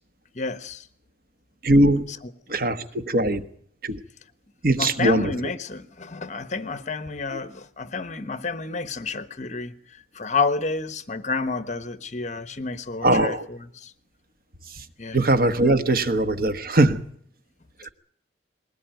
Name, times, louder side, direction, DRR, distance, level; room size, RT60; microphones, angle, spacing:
voice 1, 0.3-0.9 2.1-2.2 4.8-13.9 15.0-15.2, left 4 dB, 40° left, 12 dB, 1.1 m, -30 dB
voice 2, 1.6-2.1 2.5-3.4 3.8-4.0 4.6-5.3 7.3-7.4 13.0-13.5 15.1-17.0 17.8-17.9, right 1 dB, 55° right, 10 dB, 1.3 m, -20 dB
21.0 x 18.0 x 9.2 m, 0.63 s
head